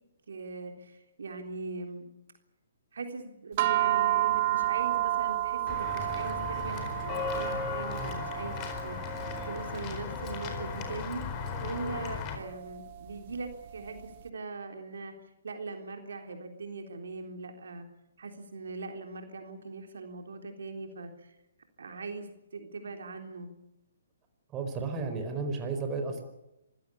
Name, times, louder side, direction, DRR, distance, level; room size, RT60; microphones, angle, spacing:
voice 1, 0.3-2.1 2.9-8.6 8.8-11.2 11.6-17.9 18.2-21.4 21.8-23.5, right 3 dB, 75° right, 5 dB, 3.6 m, -41 dB
sound 1, 3.6-14.1, right 14 dB, 45° right, 1.5 m, -32 dB
Walk footsteps / Bell, 5.7-12.4, left 5 dB, 30° left, 4.3 m, -36 dB
voice 2, 24.5-26.2, right 4 dB, 20° right, 5 dB, 4.8 m, -33 dB
25.5 x 16.0 x 8.5 m, 0.91 s
hypercardioid pair, 140°, 0 cm